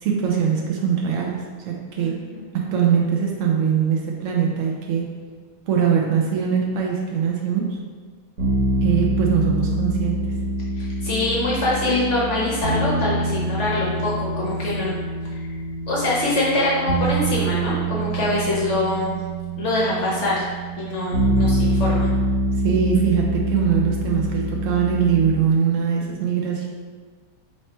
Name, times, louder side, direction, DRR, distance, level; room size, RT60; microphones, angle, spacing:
voice 1, 0.0-2.1 2.5-5.1 5.7-7.8 8.8-10.2 22.6-26.7, right 7 dB, 90° right, -1 dB, 0.6 m, -22 dB
voice 2, 2.0-2.5 10.8-14.9 15.3-15.4 15.9-19.1 19.6-20.4 20.8-22.1, left 2 dB, 60° left, -5 dB, 0.8 m, -24 dB
sound 1, 8.4-25.4, right 1 dB, 65° right, 1.6 m, -25 dB
3.1 x 3.1 x 4.2 m, 1.5 s
omnidirectional pair, 1.9 m